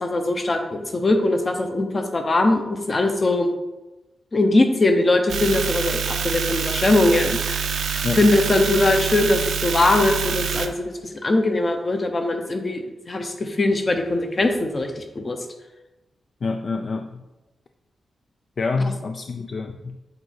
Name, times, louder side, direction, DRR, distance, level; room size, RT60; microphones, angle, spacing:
voice 1, 0.0-3.5 4.3-7.6 7.9-15.4 18.8-18.9, left 2 dB, 30° left, 5 dB, 0.8 m, -21 dB
sound 1, 5.3-10.7, right 7 dB, 85° right, 0.5 m, -26 dB
voice 2, 16.4-17.2 18.6-20.0, left 4 dB, 45° left, 6 dB, 0.3 m, -27 dB
7.9 x 2.6 x 5.7 m, 1.1 s
wide cardioid pair, 130°, 0 cm